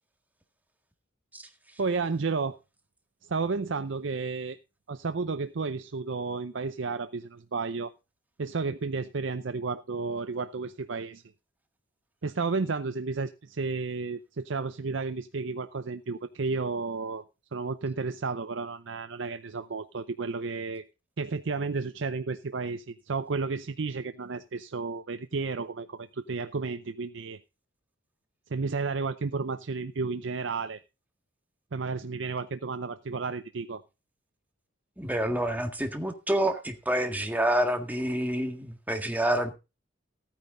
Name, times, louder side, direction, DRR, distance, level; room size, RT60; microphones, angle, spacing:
voice 1, 1.8-2.6 3.2-4.6 4.9-7.9 8.4-11.2 12.2-17.2 17.5-20.8 21.2-27.4 28.5-30.8 31.7-33.8, right 4 dB, 65° right, 0.6 m, -32 dB
voice 2, 35.0-39.5, right 1 dB, 10° right, 1.8 m, -28 dB
14.5 x 9.5 x 3.8 m
head